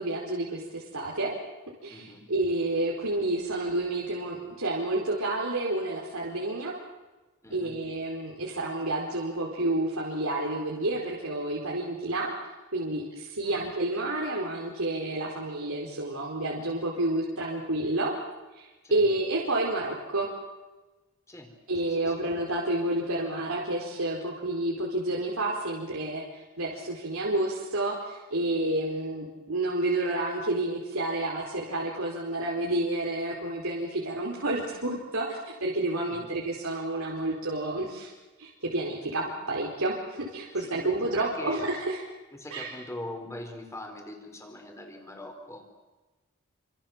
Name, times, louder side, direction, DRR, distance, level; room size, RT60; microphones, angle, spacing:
voice 1, 0.0-1.3 1.8-6.7 7.5-12.3 12.7-18.1 18.5-20.3 21.7-38.1 38.4-42.0 42.5-42.7, right 2 dB, 80° right, -3 dB, 4.6 m, -30 dB
voice 2, 1.9-2.3 7.4-7.8 13.4-13.7 18.8-19.1 21.3-21.5 21.8-22.3 36.1-36.4 40.6-41.6 42.3-45.6, left 1 dB, 15° left, 4 dB, 4.5 m, -42 dB
29.0 x 26.0 x 7.5 m, 1.2 s
head